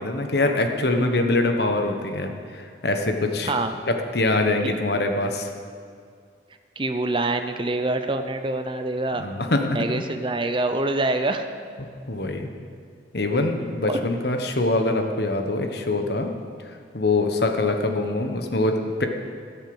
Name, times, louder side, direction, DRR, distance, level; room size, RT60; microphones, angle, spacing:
voice 1, 0.0-3.5 3.9-5.5 9.1-9.8 12.1-12.5 13.1-16.3 16.9-19.1, left 2 dB, 60° left, 5 dB, 1.2 m, -24 dB
voice 2, 3.5-3.8 4.6-4.7 6.8-9.3 9.7-11.5 13.9-14.0, right 2 dB, 25° right, 8 dB, 0.6 m, -25 dB
14.5 x 8.3 x 7.9 m, 2.2 s
head